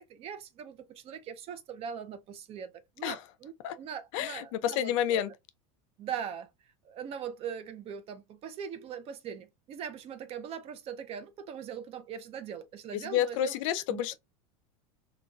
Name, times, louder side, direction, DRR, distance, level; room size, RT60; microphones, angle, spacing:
voice 1, 0.0-2.7 3.0-5.2 6.0-6.5 6.8-13.6 13.9-14.0, right 8 dB, 35° right, 0.5 m, -41 dB
voice 2, 4.1-5.3 12.9-14.1, left 11 dB, 65° left, 0.5 m, -30 dB
3.7 x 2.3 x 2.3 m
supercardioid pair, 135°, 18 cm